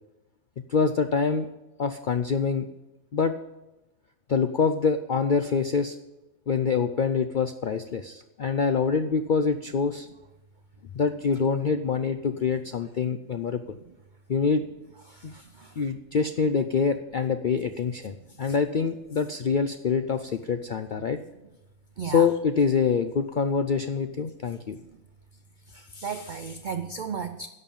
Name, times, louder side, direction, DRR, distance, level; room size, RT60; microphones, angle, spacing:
voice 1, 0.7-1.5 1.8-2.7 3.1-3.3 4.3-6.0 6.5-10.1 10.9-13.8 14.3-14.6 15.2-15.3 15.8-21.2 22.0-24.8, left 5 dB, 65° left, 9 dB, 0.5 m, -25 dB
voice 2, 15.1-15.7 22.0-22.3 25.7-27.5, right 6 dB, 65° right, 10 dB, 0.4 m, -35 dB
11.0 x 6.7 x 8.8 m, 1.0 s
omnidirectional pair, 1.5 m